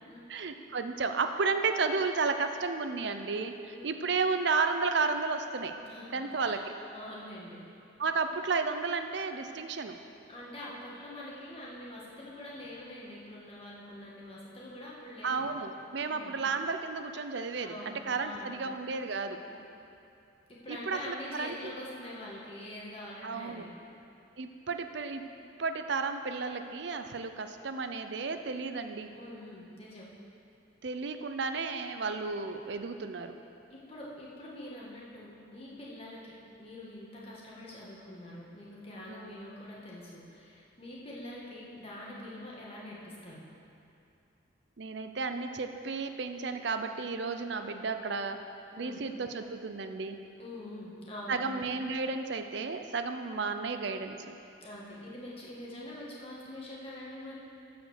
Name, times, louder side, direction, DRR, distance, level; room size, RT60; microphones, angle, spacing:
voice 1, 0.3-5.8 6.1-6.6 8.0-10.0 15.2-19.4 20.7-21.7 23.2-23.6 24.4-25.3 25.6-29.1 30.8-33.4 39.1-39.3 44.8-48.4 48.8-50.2 51.3-54.2, right 4 dB, 60° right, 7 dB, 0.5 m, -33 dB
voice 2, 5.8-6.6 6.9-7.6 10.3-15.5 16.0-16.4 17.5-18.5 20.5-23.7 29.1-30.1 33.7-43.4 48.7-49.0 50.4-51.4 54.6-57.4, left 1 dB, 30° left, -5 dB, 1.8 m, -45 dB
13.5 x 5.1 x 6.6 m, 2.6 s
head